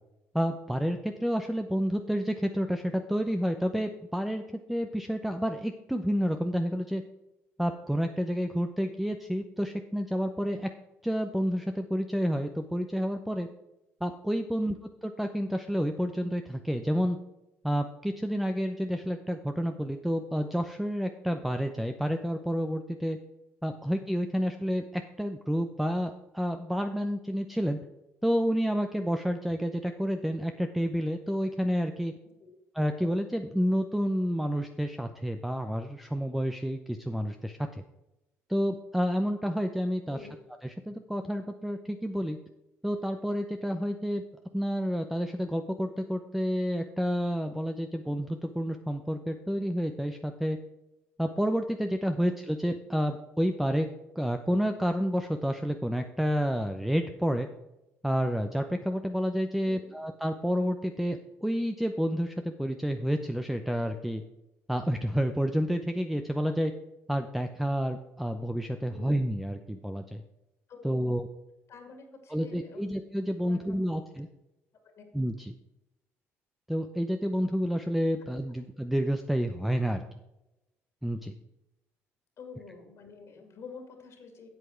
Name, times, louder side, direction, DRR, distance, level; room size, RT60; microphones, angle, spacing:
voice 1, 0.3-4.4 4.7-7.0 7.6-10.7 11.0-13.5 14.0-14.8 15.0-17.2 17.6-23.2 23.6-27.8 28.2-32.1 32.7-37.8 38.5-40.3 40.6-42.4 42.8-44.2 44.5-50.6 51.2-53.9 54.2-57.5 58.0-64.2 64.7-66.7 67.1-70.2 70.8-71.3 72.3-74.3 75.1-75.5 76.7-80.0 81.0-81.3, equal, 5° right, 6 dB, 0.7 m, -29 dB
voice 2, 59.6-59.9 68.9-69.1 70.7-71.1 71.7-72.9 73.4-73.8 75.0-75.1 82.4-84.5, left 5 dB, 60° left, 4 dB, 2.3 m, -48 dB
8.1 x 7.8 x 4.5 m, 0.95 s
cardioid pair, 85°, 5 cm